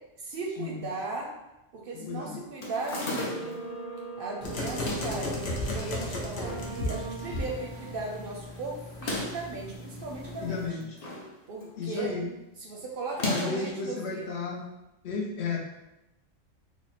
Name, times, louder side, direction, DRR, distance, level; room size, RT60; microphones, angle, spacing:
voice 1, 0.2-1.3 1.7-3.6 4.2-10.8 11.5-12.1 12.6-14.4, right 3 dB, 60° right, 0 dB, 0.6 m, -37 dB
voice 2, 1.9-2.4 10.4-11.0 11.8-12.3 13.2-14.6 15.0-15.6, left 4 dB, 65° left, 0 dB, 0.8 m, -33 dB
sound 1, 2.6-3.6 4.7-5.2 6.0-6.7 7.0-7.1 7.3-7.4 8.9-9.5 10.5-11.3 11.6-11.9 13.1-13.7, left 1 dB, 40° left, 0.6 m, -34 dB
sound 2, 3.1-8.6, right 2 dB, 15° right, 0.5 m, -41 dB
sound 3, 4.4-10.7, left 1 dB, 85° left, 1.2 m, -36 dB
3.5 x 2.1 x 4.0 m, 0.95 s
omnidirectional pair, 1.3 m